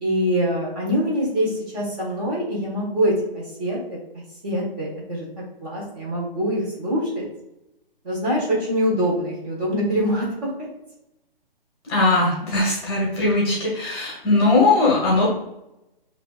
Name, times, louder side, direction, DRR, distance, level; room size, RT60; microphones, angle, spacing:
voice 1, 0.0-7.3 8.0-10.5, equal, 25° right, -5 dB, 1.5 m, -24 dB
voice 2, 11.8-15.3, left 2 dB, 25° left, -3 dB, 1.0 m, -19 dB
7.0 x 2.8 x 2.4 m, 0.90 s
hypercardioid pair, 150°, 29 cm